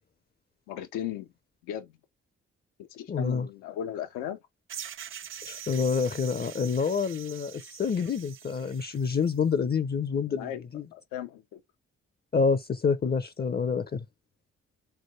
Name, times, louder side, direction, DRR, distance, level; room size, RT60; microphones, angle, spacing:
voice 1, 0.7-1.3 1.6-1.9 2.8-4.4 10.3-10.7 10.9-11.6, left 10 dB, 85° left, 0.7 m, -36 dB
voice 2, 3.1-3.5 5.4-10.8 12.3-14.0, left 5 dB, 30° left, 0.6 m, -27 dB
sound 1, 4.7-9.4, right 10 dB, 40° right, 0.4 m, -44 dB
3.8 x 3.3 x 3.1 m
hypercardioid pair, 45°, 31 cm